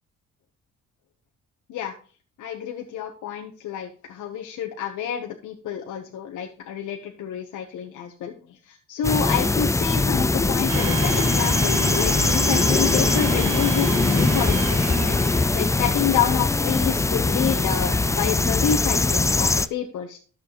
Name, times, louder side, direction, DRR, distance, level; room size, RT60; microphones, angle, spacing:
voice 1, 2.4-20.2, left 9 dB, 75° left, 2 dB, 1.1 m, -28 dB
sound 1, 9.0-19.7, left 3 dB, 10° left, 0.4 m, -21 dB
Domestic sounds home sounds, 10.7-16.2, right 2 dB, 60° right, 1.7 m, -31 dB
12.0 x 6.9 x 3.1 m, 0.39 s
cardioid pair, 90°, 30 cm